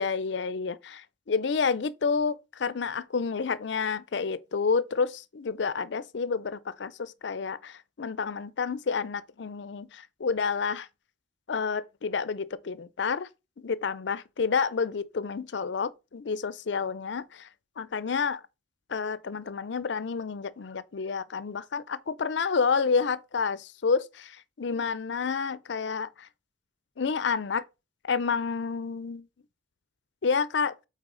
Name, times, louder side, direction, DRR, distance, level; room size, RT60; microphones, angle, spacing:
voice 1, 0.0-10.9 11.5-13.3 13.6-17.5 17.8-18.4 18.9-26.3 27.0-27.6 28.0-29.3 30.2-30.7, left 5 dB, 65° left, 0.5 m, -29 dB
8.0 x 4.2 x 3.8 m
head